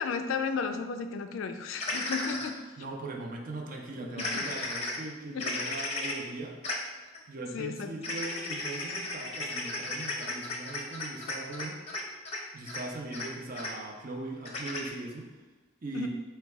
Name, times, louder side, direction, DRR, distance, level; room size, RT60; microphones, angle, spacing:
voice 1, 0.0-2.9 3.9-4.7 5.3-5.5 7.5-7.9 15.9-16.1, left 5 dB, 80° left, 8 dB, 0.3 m, -34 dB
sound 1, 1.8-2.5 4.2-5.0 5.4-6.1 6.6-6.7 7.1-7.2 8.0-12.0 12.3-12.4 12.7-12.8 13.1-13.3 13.6-13.7 14.5-14.9, left 2 dB, 30° left, 0.6 m, -34 dB
voice 2, 2.8-6.6 7.3-11.8 12.5-15.3 15.8-16.1, right 2 dB, 45° right, 1 dB, 0.6 m, -40 dB
4.0 x 2.2 x 4.5 m, 1.3 s
head